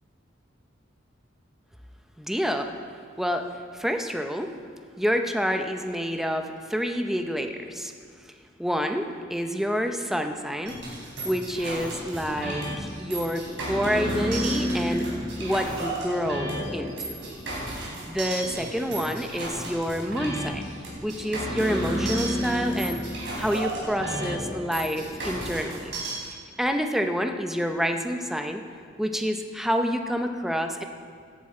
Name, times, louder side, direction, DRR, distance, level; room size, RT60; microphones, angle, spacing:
voice 1, 2.2-2.7 3.2-3.4 3.7-4.5 5.0-6.4 6.7-7.9 8.6-10.7 11.2-15.1 15.4-17.2 18.1-20.7 21.0-23.0 23.4-25.9 26.6-28.6 29.0-30.8, equal, ahead, 5 dB, 0.7 m, -28 dB
sound 1, 10.7-26.1, right 1 dB, 70° right, 4.1 m, -31 dB
16.5 x 11.0 x 4.4 m, 2.1 s
head